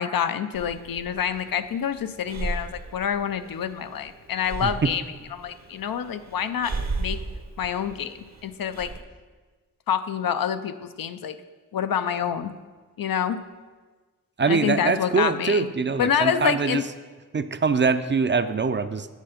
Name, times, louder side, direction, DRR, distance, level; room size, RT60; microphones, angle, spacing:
voice 1, 0.0-5.0 5.3-7.2 7.6-8.2 8.4-8.9 9.9-11.4 11.7-12.5 13.0-13.4 14.5-15.7 16.0-16.8, left 8 dB, 85° left, 10 dB, 0.5 m, -27 dB
Breathing, 0.5-9.0, right 3 dB, 55° right, 0.8 m, -36 dB
voice 2, 4.6-4.9 14.4-16.8 17.3-19.1, right 4 dB, 35° right, 11 dB, 0.4 m, -23 dB
8.2 x 6.6 x 5.0 m, 1.4 s
wide cardioid pair, 65°, 33 cm